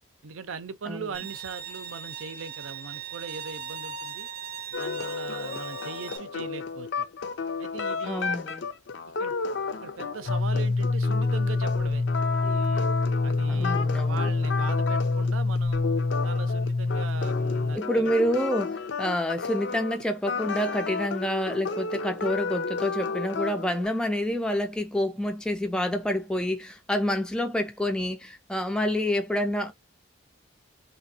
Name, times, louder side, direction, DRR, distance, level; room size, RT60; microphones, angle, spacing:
voice 1, 0.2-4.3 4.8-7.1 7.6-8.4 9.2-9.4 9.8-12.0 12.4-12.9 13.2-15.8 16.2-18.1, right 5 dB, 90° right, 0.6 m, -40 dB
Bowed string instrument, 1.1-6.2, right 7 dB, 45° right, 0.7 m, -39 dB
sound 1, 4.7-23.9, left 4 dB, 65° left, 0.5 m, -32 dB
voice 2, 8.0-8.6 13.5-14.3 17.7-29.7, equal, 5° left, 0.3 m, -28 dB
sound 2, 10.3-17.8, left 3 dB, 85° left, 1.0 m, -26 dB
3.4 x 2.9 x 2.8 m
head